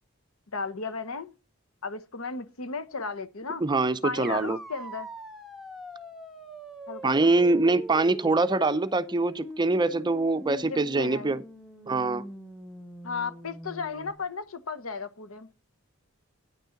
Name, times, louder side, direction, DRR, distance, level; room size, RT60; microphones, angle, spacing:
voice 1, 0.5-1.3 1.8-3.6 4.0-5.1 6.9-7.3 10.7-11.3 13.0-15.6, left 4 dB, 75° left, 1.0 m, -35 dB
voice 2, 3.6-4.6 7.0-11.4 11.9-12.2, right 3 dB, 20° right, 0.5 m, -24 dB
sound 1, 4.2-14.1, equal, ahead, 1.3 m, -43 dB
9.4 x 6.5 x 5.7 m
head